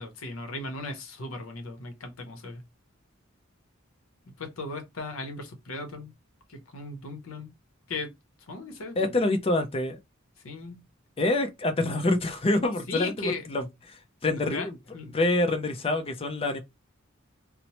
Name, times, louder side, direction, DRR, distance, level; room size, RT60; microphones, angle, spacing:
voice 1, 0.0-2.6 4.4-6.1 6.5-7.5 7.9-8.1 8.5-9.2 10.4-10.8 12.9-13.4 14.3-14.7 14.9-15.2, left 3 dB, 75° left, 0.7 m, -37 dB
voice 2, 9.0-10.0 11.2-14.8 15.1-16.6, left 2 dB, 30° left, 0.5 m, -26 dB
2.9 x 2.0 x 2.8 m
head